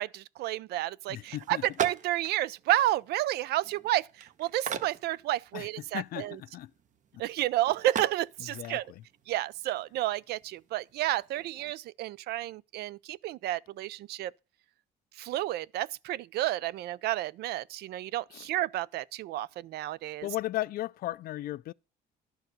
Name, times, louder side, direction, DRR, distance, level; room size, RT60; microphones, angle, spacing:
voice 1, 0.0-6.4 7.2-8.9 9.3-14.3 15.2-20.3, right 14 dB, 75° right, 0.5 m, -31 dB
voice 2, 1.1-1.6 5.5-5.7 5.9-6.7 8.5-8.8 18.3-18.5 20.2-21.7, left 15 dB, 60° left, 0.4 m, -35 dB
sound 1, 1.3-11.7, right 7 dB, 50° right, 1.0 m, -42 dB
12.0 x 4.7 x 6.6 m
cardioid pair, 110°, 17 cm